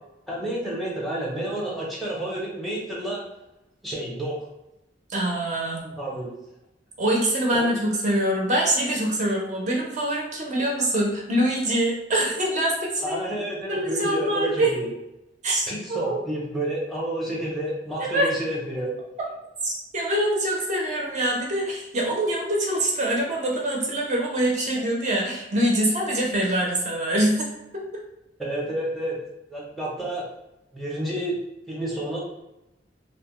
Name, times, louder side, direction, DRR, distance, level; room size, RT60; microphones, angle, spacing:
voice 1, 0.3-3.2 3.8-4.4 5.8-6.3 7.5-7.7 13.0-14.9 15.7-19.0 28.4-29.2 29.5-30.2 30.7-31.4 31.7-32.2, right 1 dB, ahead, -5 dB, 0.6 m, -30 dB
voice 2, 5.1-5.9 7.0-13.2 13.7-14.7 15.4-16.2 18.0-18.3 19.6-27.5 27.9-28.0, right 1 dB, 40° right, -2 dB, 0.6 m, -24 dB
2.8 x 2.1 x 2.9 m, 0.92 s
head